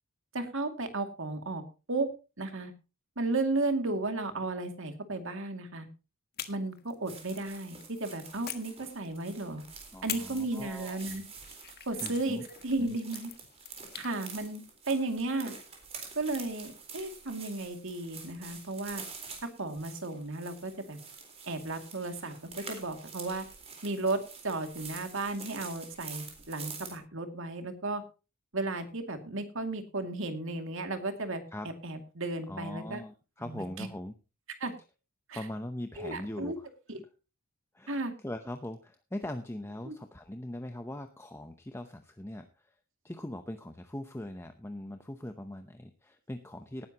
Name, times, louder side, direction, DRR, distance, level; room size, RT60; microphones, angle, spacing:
voice 1, 0.3-1.6 1.9-2.1 2.4-2.7 3.2-5.9 6.5-9.6 10.0-11.2 11.9-13.3 14.0-15.5 16.1-16.7 16.9-19.0 19.4-21.0 21.5-23.4 23.8-28.0 28.5-33.0 33.4-33.9 34.6-34.7 35.3-35.5 36.0-36.6 36.9-37.0 37.9-38.1 39.8-40.0, right 2 dB, 60° right, 7 dB, 2.4 m, -34 dB
sound 1, 6.3-7.9 8.4-9.5 10.1-14.1, left 11 dB, 45° left, 1.4 m, -44 dB
sound 2, 7.1-27.0, right 5 dB, 30° right, 4.0 m, -47 dB
voice 2, 9.9-11.2 12.0-12.4 12.8-12.9 31.5-31.7 32.5-34.1 35.3-36.5 37.7-42.5 43.0-46.9, left 1 dB, 10° left, 7 dB, 0.7 m, -41 dB
18.5 x 10.5 x 2.9 m, 0.31 s
head